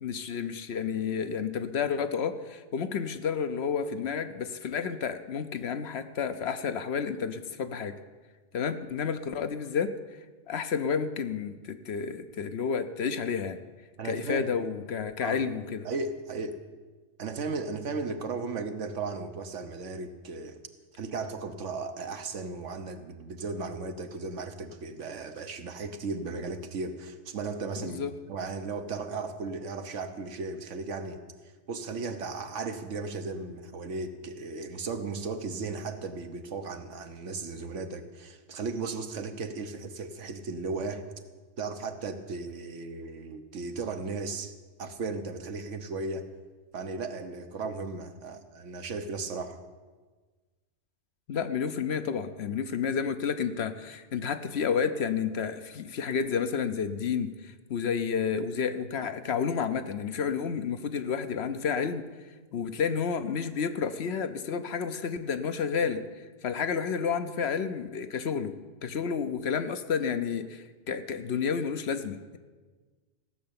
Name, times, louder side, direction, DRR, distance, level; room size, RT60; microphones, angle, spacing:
voice 1, 0.0-8.0 8.5-9.9 10.5-13.6 14.0-15.9 27.8-28.1 51.3-62.0 62.5-66.0 66.4-68.5 68.8-72.4, left 6 dB, 65° left, 10 dB, 1.0 m, -30 dB
voice 2, 14.0-14.5 15.2-15.4 15.8-16.6 17.2-20.6 21.0-28.0 28.3-31.2 31.7-41.0 41.6-44.5 44.8-46.2 46.7-49.6, right 4 dB, 85° right, 7 dB, 1.3 m, -36 dB
15.5 x 6.6 x 8.7 m, 1.4 s
omnidirectional pair, 1.2 m